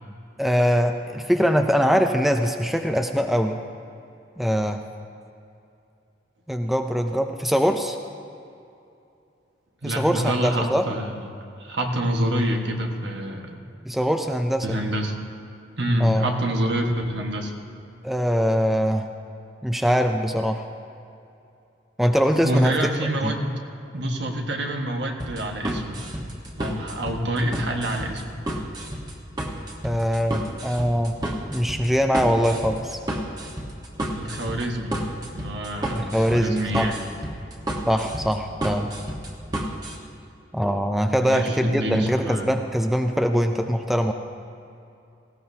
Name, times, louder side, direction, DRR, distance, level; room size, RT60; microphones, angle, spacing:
voice 1, 0.4-3.6 4.4-4.8 6.5-8.0 9.8-10.8 13.9-14.8 16.0-16.3 18.0-19.1 19.6-20.6 22.0-22.7 23.2-23.4 29.8-31.2 31.5-33.0 35.9-36.9 37.9-38.9 40.5-44.1, equal, ahead, 5 dB, 0.4 m, -22 dB
voice 2, 9.8-11.1 11.6-13.6 14.6-15.2 15.8-17.5 22.4-23.5 23.9-26.0 26.6-28.2 34.1-34.9 35.3-37.0 41.2-42.5, right 1 dB, 65° right, 2 dB, 1.5 m, -26 dB
sound 1, 25.2-40.0, right 1 dB, 20° right, 1.3 m, -31 dB
18.5 x 16.5 x 2.8 m, 2.6 s
head